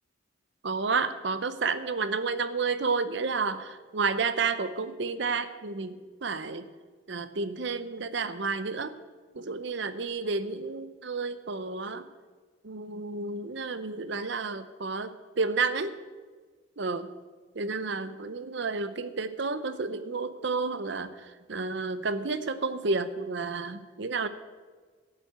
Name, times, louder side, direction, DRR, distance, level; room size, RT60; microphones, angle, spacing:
voice 1, 0.6-6.6 7.1-8.9 9.3-12.1 12.6-15.9 16.8-17.1 17.5-21.1 21.5-24.3, right 4 dB, 65° right, 13 dB, 0.7 m, -31 dB
12.5 x 7.6 x 8.0 m, 1.5 s
head